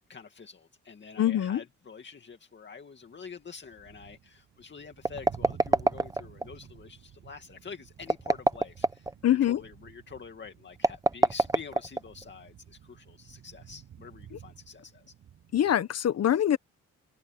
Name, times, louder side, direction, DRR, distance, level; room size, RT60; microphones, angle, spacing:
voice 1, 0.1-15.1, left 6 dB, 35° left, 2.3 m, -47 dB
voice 2, 1.2-1.6 9.2-9.6 15.5-16.6, left 11 dB, 55° left, 1.3 m, -24 dB
sound 1, 3.0-15.7, right 9 dB, 65° right, 7.0 m, -52 dB
sound 2, 5.0-6.5 8.0-9.1 10.8-12.3, right 2 dB, 10° right, 1.0 m, -25 dB
cardioid pair, 90°, 30 cm